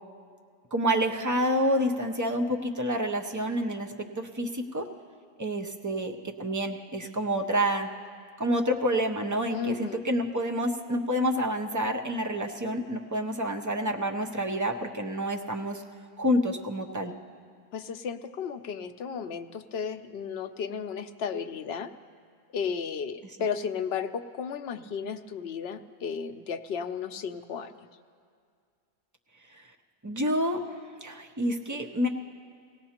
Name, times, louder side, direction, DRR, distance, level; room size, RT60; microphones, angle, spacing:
voice 1, 0.7-4.9 5.4-7.9 8.4-15.8 16.2-17.1 30.0-30.6 31.0-32.1, equal, 20° right, 3 dB, 0.6 m, -28 dB
voice 2, 9.5-10.0 17.7-21.9 22.5-27.9, left 6 dB, 75° left, 8 dB, 0.9 m, -34 dB
24.5 x 17.5 x 2.9 m, 2.2 s
omnidirectional pair, 1.1 m